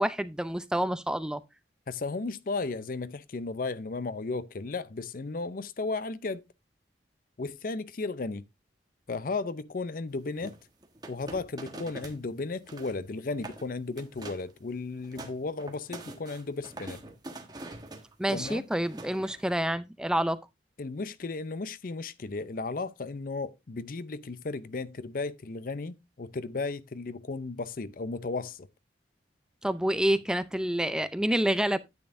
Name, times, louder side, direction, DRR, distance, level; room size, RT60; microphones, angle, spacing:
voice 1, 0.0-1.4 18.2-20.4 29.6-31.8, right 1 dB, 5° right, 0.4 m, -28 dB
voice 2, 1.9-6.4 7.4-8.4 9.1-10.5 11.1-17.0 18.3-18.6 20.8-28.7, left 3 dB, 50° left, 0.5 m, -35 dB
sound 1, 10.4-12.2 12.5-13.0 13.3-13.6 14.0-14.5 14.9-19.6, right 2 dB, 25° right, 1.4 m, -44 dB
10.5 x 9.0 x 2.6 m
head